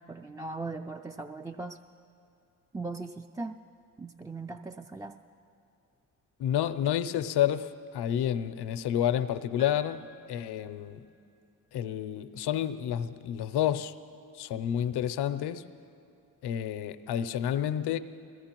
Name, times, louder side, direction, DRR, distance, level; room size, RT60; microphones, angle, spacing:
voice 1, 0.1-1.8 2.7-3.6 4.0-5.2, right 3 dB, 10° right, 0.4 m, -38 dB
voice 2, 6.4-11.0 11.7-13.9 14.3-15.6 16.4-18.0, left 10 dB, 75° left, 0.6 m, -30 dB
Piano, 9.6-11.3, left 2 dB, 85° right, 3.1 m, -52 dB
21.5 x 15.0 x 3.0 m
supercardioid pair, 45°, 40 cm